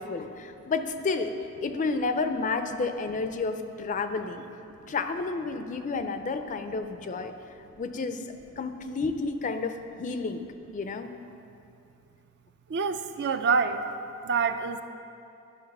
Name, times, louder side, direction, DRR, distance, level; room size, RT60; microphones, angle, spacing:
voice 1, 0.0-1.3 1.6-4.5 4.9-7.3 7.8-9.7 10.0-10.4 10.7-11.1, left 4 dB, 35° left, 8 dB, 0.4 m, -31 dB
voice 2, 12.7-13.9 14.2-14.8, right 5 dB, 50° right, 9 dB, 0.4 m, -26 dB
11.0 x 5.8 x 5.4 m, 2.7 s
head